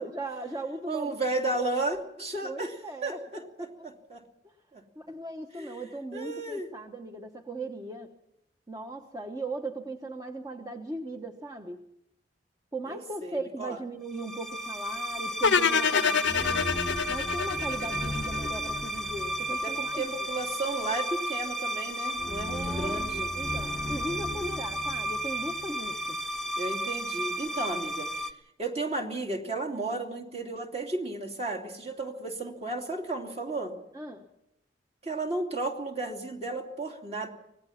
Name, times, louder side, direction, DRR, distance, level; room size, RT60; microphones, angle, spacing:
voice 1, 0.0-1.1 1.4-1.5 1.9-2.0 2.4-3.2 3.6-3.7 4.4-4.5 4.9-8.1 8.7-11.8 12.7-16.8 17.1-20.1 22.5-23.0 23.3-26.2 33.9-34.2, right 2 dB, 20° right, 4 dB, 1.1 m, -38 dB
voice 2, 0.9-2.7 3.0-4.2 4.7-4.8 5.5-5.9 6.1-6.7 12.9-13.8 19.6-23.3 26.6-28.3 28.6-33.7 35.0-37.3, right 2 dB, 35° right, 3 dB, 2.8 m, -33 dB
sound 1, 14.1-28.3, equal, ahead, 0.9 m, -33 dB
sound 2, 15.4-18.6, left 6 dB, 85° left, 0.7 m, -26 dB
25.0 x 18.5 x 5.8 m, 0.81 s
head